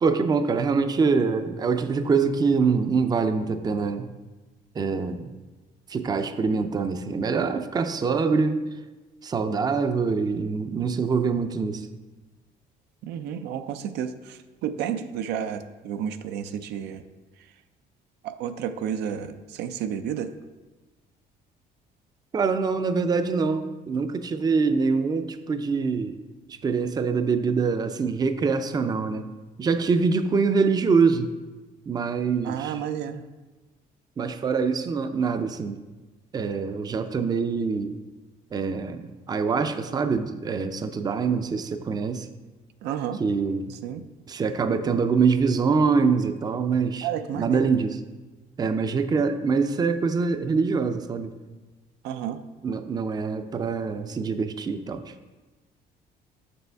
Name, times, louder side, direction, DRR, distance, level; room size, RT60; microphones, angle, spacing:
voice 1, 0.0-4.1 4.8-5.3 5.9-8.6 9.2-11.9 22.3-26.1 26.5-29.3 29.6-31.3 31.9-32.7 34.2-35.8 36.3-37.9 38.5-42.3 43.2-43.6 44.3-47.1 47.4-47.9 48.6-51.3 52.6-55.0, right 5 dB, 25° right, 9 dB, 0.4 m, -24 dB
voice 2, 13.0-17.1 17.4-17.5 18.2-20.3 32.4-33.3 42.8-43.2 43.7-44.1 47.0-47.7 52.0-52.4, right 9 dB, 80° right, 9 dB, 0.5 m, -31 dB
6.8 x 6.1 x 3.4 m, 1.2 s
cardioid pair, 110°, 17 cm